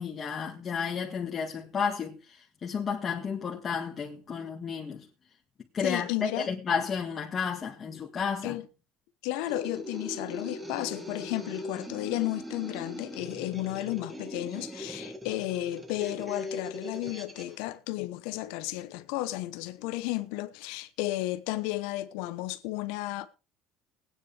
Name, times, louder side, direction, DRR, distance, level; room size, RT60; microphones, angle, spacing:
voice 1, 0.0-5.1 5.7-8.6, left 6 dB, 35° left, 1.9 m, -32 dB
voice 2, 5.8-6.5 8.4-8.7 9.2-23.3, left 17 dB, 85° left, 1.0 m, -33 dB
sound 1, 9.4-17.6, left 1 dB, 15° right, 2.4 m, -40 dB
20.0 x 9.4 x 3.5 m
supercardioid pair, 95°, 0 cm